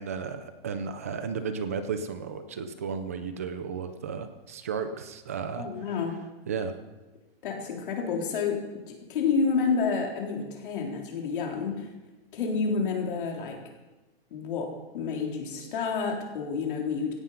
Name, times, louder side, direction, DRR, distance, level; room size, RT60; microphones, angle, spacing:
voice 1, 0.0-5.7 6.5-6.7, right 6 dB, 15° right, 9 dB, 0.4 m, -34 dB
voice 2, 5.6-6.2 7.4-8.7 9.1-11.9 12.3-13.6 14.3-17.1, left 5 dB, 55° left, 1 dB, 3.8 m, -29 dB
17.0 x 9.7 x 5.6 m, 1.1 s
hypercardioid pair, 170°, 31 cm